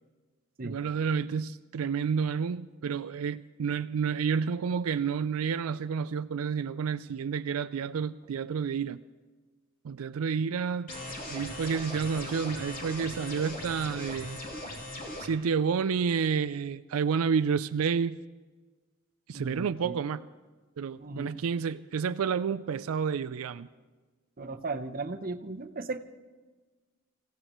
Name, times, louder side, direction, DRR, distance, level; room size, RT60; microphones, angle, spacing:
voice 1, 0.6-9.0 9.8-10.9 11.3-14.4 15.2-18.2 19.3-20.2 20.8-23.7, right 6 dB, 90° right, 0.4 m, -30 dB
sound 1, 10.9-15.3, left 1 dB, 40° left, 3.0 m, -39 dB
voice 2, 19.3-20.0 21.0-21.4 24.4-26.0, right 3 dB, 45° right, 0.7 m, -36 dB
28.0 x 16.0 x 3.1 m
head